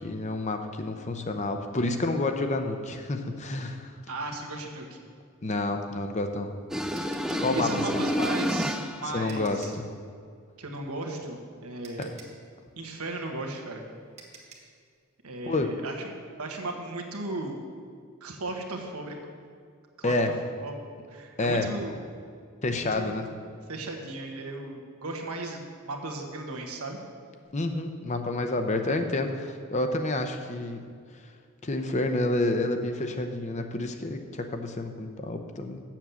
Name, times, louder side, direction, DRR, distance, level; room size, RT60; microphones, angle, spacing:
voice 1, 0.0-3.9 5.4-6.5 7.4-8.0 9.0-9.9 12.0-12.1 15.4-15.7 20.0-20.3 21.4-21.7 22.6-23.3 27.5-30.8 31.6-35.8, left 2 dB, 35° left, 6 dB, 0.7 m, -29 dB
voice 2, 4.1-5.0 7.5-9.7 10.6-12.1 12.8-13.8 15.2-16.1 16.4-17.6 18.2-19.2 20.0-20.2 20.6-20.7 21.1-22.0 22.8-23.2 23.7-27.0, right 2 dB, 90° right, 2 dB, 1.4 m, -36 dB
sound 1, 6.0-9.9 11.3-11.4 11.8-14.8, right 4 dB, 30° right, 1.3 m, -52 dB
sound 2, 6.7-9.2, equal, ahead, 0.4 m, -29 dB
7.7 x 7.4 x 7.0 m, 2.2 s
head